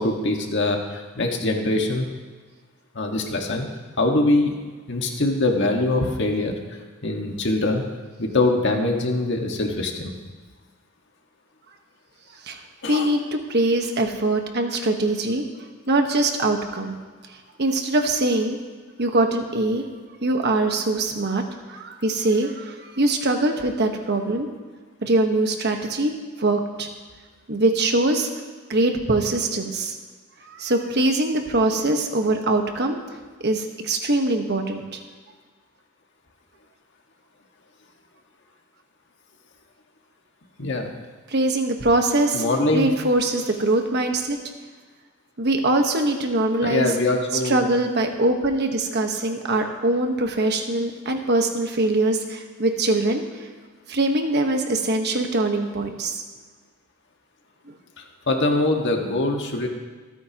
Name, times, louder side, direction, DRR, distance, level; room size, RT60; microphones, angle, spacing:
voice 1, 0.0-2.1 2.9-3.7 4.0-4.5 4.9-6.5 7.0-7.8 8.2-10.1 12.8-13.1 40.6-40.9 42.3-42.9 46.6-47.6 58.3-59.7, left 2 dB, 60° left, 2 dB, 1.7 m, -23 dB
voice 2, 12.9-15.4 15.9-16.9 17.6-18.6 19.0-19.8 20.2-21.4 21.7-24.5 25.0-26.1 26.4-26.9 27.5-28.3 28.7-29.9 30.4-33.0 33.4-35.0 41.3-42.4 42.7-44.4 45.4-46.9 47.4-53.2 53.9-56.2, right 2 dB, 55° right, 4 dB, 1.3 m, -22 dB
26.5 x 9.5 x 3.0 m, 1.4 s
head